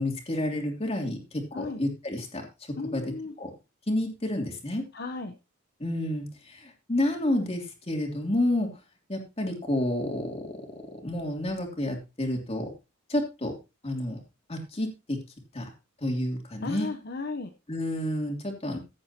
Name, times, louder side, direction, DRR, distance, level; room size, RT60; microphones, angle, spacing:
voice 1, 0.0-3.0 3.4-3.5 3.9-4.8 5.8-8.7 9.1-12.7 13.1-13.5 13.8-14.2 14.5-15.2 15.5-15.7 16.0-16.9 17.7-18.8, left 1 dB, 30° left, 2 dB, 3.0 m, -30 dB
voice 2, 2.8-3.3 4.9-5.3 16.6-17.5, left 3 dB, 50° left, 5 dB, 0.9 m, -35 dB
15.5 x 8.5 x 2.9 m, 0.27 s
head